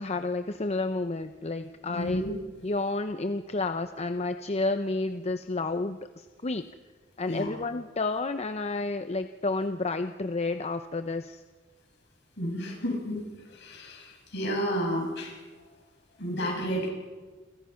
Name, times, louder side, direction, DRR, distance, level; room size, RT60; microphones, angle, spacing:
voice 1, 0.0-2.2 2.6-6.7 7.2-11.4, left 3 dB, 35° left, 9 dB, 0.7 m, -30 dB
voice 2, 1.9-2.3 7.3-7.5 12.4-15.3 16.2-16.9, equal, 65° left, 1 dB, 7.4 m, -31 dB
29.5 x 25.0 x 5.8 m, 1.4 s
head